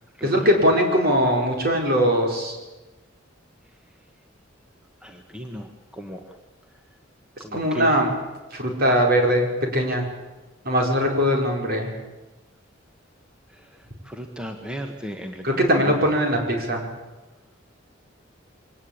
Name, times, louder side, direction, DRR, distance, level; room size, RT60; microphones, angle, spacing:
voice 1, 0.2-2.6 7.5-8.1 8.5-10.0 10.6-11.9 15.4-16.8, equal, 50° right, 1 dB, 5.0 m, -21 dB
voice 2, 5.0-6.4 7.4-7.9 13.5-15.4 15.7-15.9, equal, 5° right, 3 dB, 1.4 m, -36 dB
23.5 x 18.5 x 8.7 m, 1.1 s
head